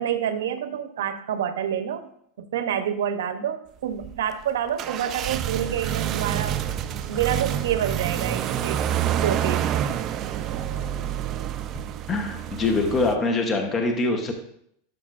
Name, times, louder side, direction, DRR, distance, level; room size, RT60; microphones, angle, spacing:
voice 1, 0.0-2.1 2.4-9.7, right 9 dB, 90° right, 9 dB, 0.8 m, -28 dB
sound 1, 3.9-13.1, right 10 dB, 35° right, 0.4 m, -28 dB
voice 2, 12.1-14.3, left 3 dB, 20° left, 4 dB, 1.0 m, -24 dB
11.5 x 5.4 x 2.5 m, 0.69 s
supercardioid pair, 150°, 0 cm